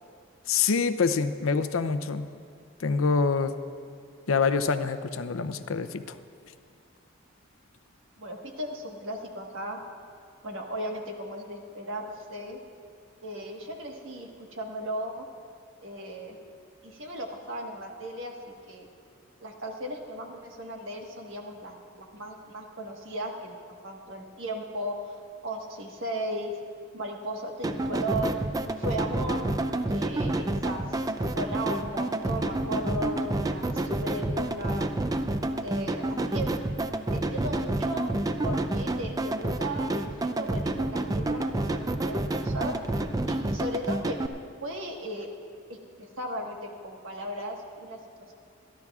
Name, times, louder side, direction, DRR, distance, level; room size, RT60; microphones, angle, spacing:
voice 1, 0.5-2.3 2.8-3.5 4.3-6.2, left 5 dB, 80° left, 11 dB, 0.5 m, -26 dB
voice 2, 8.2-9.8 10.4-12.6 13.2-15.3 15.8-16.4 16.8-18.4 18.7-18.9 19.4-25.1 25.4-26.6 26.9-28.4 28.8-29.5 29.9-31.0 31.3-34.9 35.6-36.5 37.1-38.1 38.4-42.8 43.3-44.2 44.6-45.3 45.7-48.3, right 1 dB, 65° right, 1 dB, 1.4 m, -36 dB
sound 1, 27.6-44.3, right 2 dB, 15° right, 0.4 m, -29 dB
26.5 x 11.5 x 2.4 m, 2.3 s
head